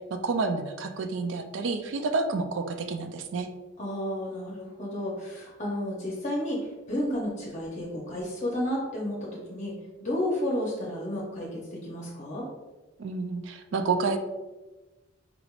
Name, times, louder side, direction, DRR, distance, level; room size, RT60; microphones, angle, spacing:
voice 1, 0.1-3.5 13.0-14.2, right 4 dB, 60° right, 7 dB, 0.4 m, -29 dB
voice 2, 3.8-6.6 6.9-9.2 9.5-9.7 10.0-12.5, left 1 dB, 35° left, -3 dB, 0.7 m, -31 dB
5.0 x 3.3 x 2.4 m, 1.2 s
head